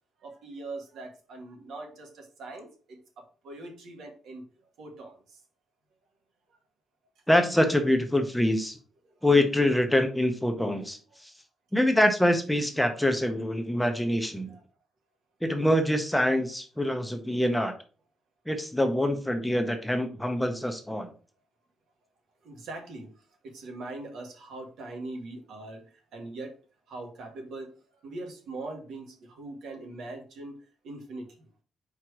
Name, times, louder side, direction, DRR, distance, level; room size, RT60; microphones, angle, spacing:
voice 1, 0.2-4.5 4.8-5.4 9.0-9.2 12.7-12.8 14.5-14.6 15.5-15.7 22.4-26.6 26.9-31.6, right 2 dB, 75° right, 3 dB, 1.8 m, -42 dB
voice 2, 7.3-8.8 9.2-11.3 11.7-14.6 15.4-17.7 18.5-21.1, left 1 dB, 5° left, 6 dB, 0.7 m, -25 dB
4.9 x 4.6 x 4.7 m, 0.38 s
cardioid pair, 160°, 0 cm